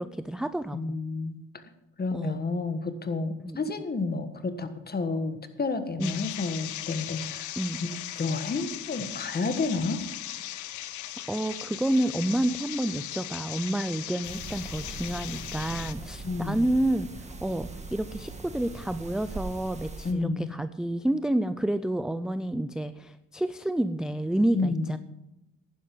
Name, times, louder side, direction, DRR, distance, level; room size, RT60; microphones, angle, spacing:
voice 1, 0.0-0.8 2.1-2.4 3.4-3.6 6.0-6.2 7.6-7.8 11.3-17.1 17.4-25.0, right 1 dB, ahead, 11 dB, 0.4 m, -29 dB
voice 2, 0.7-1.4 2.0-7.5 7.8-7.9 8.1-10.0 16.2-16.6 20.0-20.5 24.5-25.0, left 3 dB, 30° left, 9 dB, 1.5 m, -30 dB
sound 1, 6.0-15.9, left 13 dB, 75° left, 0.8 m, -38 dB
sound 2, 14.2-20.1, right 2 dB, 20° right, 1.8 m, -41 dB
11.0 x 10.5 x 5.3 m, 0.95 s
cardioid pair, 90°, 30 cm